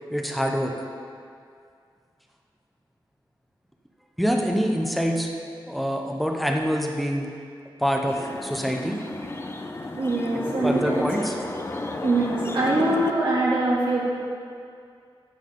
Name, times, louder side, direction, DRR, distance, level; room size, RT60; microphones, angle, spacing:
voice 1, 0.1-0.7 4.2-5.3 5.7-7.3 7.8-9.0 10.6-11.3, equal, ahead, 1 dB, 0.9 m, -25 dB
sound 1, 8.1-13.1, left 2 dB, 30° left, 0.6 m, -33 dB
voice 2, 9.9-11.3 12.0-14.1, right 2 dB, 65° right, -6 dB, 2.7 m, -23 dB
14.5 x 7.2 x 3.9 m, 2.3 s
wide cardioid pair, 125°, 9 cm